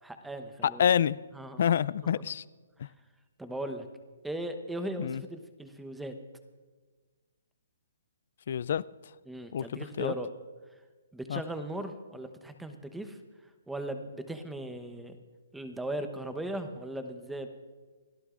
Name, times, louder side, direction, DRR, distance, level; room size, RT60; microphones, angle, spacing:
voice 1, 0.0-0.8 1.3-1.6 3.4-3.9 4.2-6.1 9.3-10.3 11.1-13.2 13.7-15.1 15.5-17.5, right 1 dB, 5° right, 8 dB, 1.0 m, -38 dB
voice 2, 0.8-1.2 1.6-2.4 5.0-5.2 8.5-8.8 9.5-10.1 11.3-11.4, left 9 dB, 60° left, 20 dB, 0.4 m, -27 dB
29.0 x 12.0 x 2.5 m, 1.4 s
hypercardioid pair, 145°, 0 cm